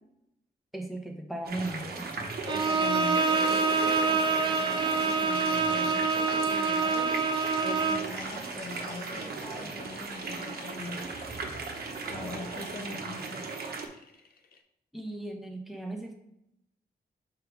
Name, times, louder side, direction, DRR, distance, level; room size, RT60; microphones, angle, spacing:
voice 1, 0.7-2.1 12.3-12.4 13.1-13.3 14.9-16.1, right 2 dB, ahead, 1 dB, 1.0 m, -37 dB
sound 1, 1.5-13.9, right 4 dB, 70° right, 1.1 m, -37 dB
voice 2, 2.5-11.0 12.1-13.5, left 3 dB, 35° left, 1 dB, 0.7 m, -42 dB
Bowed string instrument, 2.5-8.2, right 4 dB, 30° right, 0.3 m, -26 dB
sound 2, 2.6-14.6, left 5 dB, 70° left, 0.7 m, -45 dB
6.6 x 3.7 x 4.6 m, 0.79 s
wide cardioid pair, 165°, 16 cm